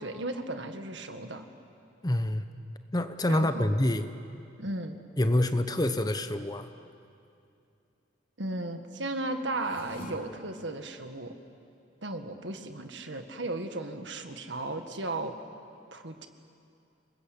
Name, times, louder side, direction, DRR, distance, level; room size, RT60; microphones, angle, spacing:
voice 1, 0.0-1.5 3.3-3.7 4.6-5.0 8.4-11.3 12.0-15.3 15.9-16.3, right 2 dB, 65° right, 7 dB, 1.7 m, -35 dB
voice 2, 2.0-2.5 2.9-4.1 5.2-6.7, left 1 dB, 20° left, 9 dB, 0.9 m, -26 dB
sound 1, 9.5-10.1, equal, 50° left, 2.7 m, -44 dB
29.5 x 20.5 x 8.5 m, 2.5 s
head